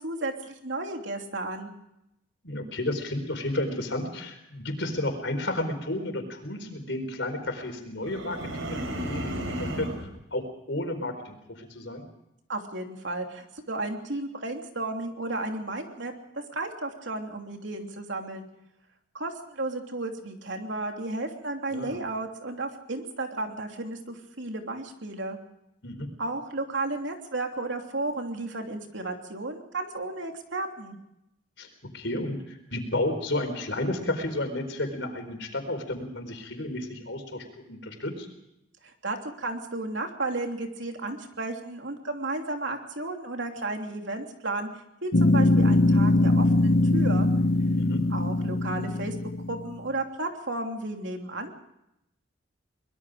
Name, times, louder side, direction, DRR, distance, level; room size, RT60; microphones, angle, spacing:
voice 1, 0.0-1.7 12.5-16.1 16.5-18.5 19.1-25.4 26.2-31.0 38.8-44.7 45.0-47.3 48.1-49.2 49.5-51.6, right 2 dB, 70° right, 3 dB, 3.1 m, -33 dB
voice 2, 2.4-12.0 21.7-22.0 25.8-26.1 31.6-38.3 47.8-48.0, left 1 dB, 65° left, 6 dB, 4.5 m, -32 dB
sound 1, 8.0-10.1, equal, 90° right, 4.7 m, -33 dB
sound 2, 45.1-49.7, left 2 dB, 50° left, 1.2 m, -22 dB
24.5 x 21.5 x 5.0 m, 0.84 s
head